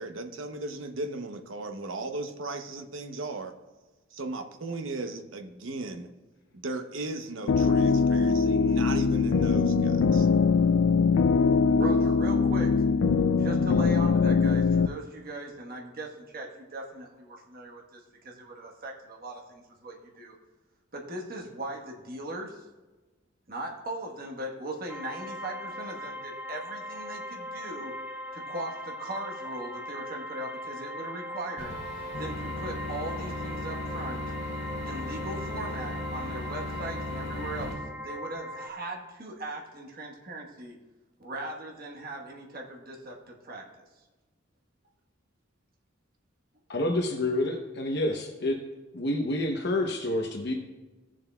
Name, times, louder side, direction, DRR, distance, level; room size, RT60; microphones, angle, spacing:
voice 1, 0.0-3.5 4.1-6.1 6.5-10.3, right 2 dB, 70° right, 6 dB, 0.8 m, -36 dB
garage progression (consolidated), 7.5-14.9, left 5 dB, 70° left, 0.3 m, -22 dB
voice 2, 11.8-12.8 13.4-20.3 20.9-22.7 23.5-27.9 28.3-31.8 32.2-34.2 34.8-40.8 41.2-43.8, right 1 dB, 45° right, 0 dB, 1.3 m, -39 dB
sound 1, 24.9-38.7, left 1 dB, 10° right, 0.5 m, -39 dB
sound 2, 31.6-37.7, left 1 dB, 35° left, 3.2 m, -36 dB
voice 3, 46.7-48.6 48.9-50.5, left 1 dB, 55° left, 1 dB, 0.8 m, -28 dB
16.0 x 7.3 x 2.3 m, 1.2 s
head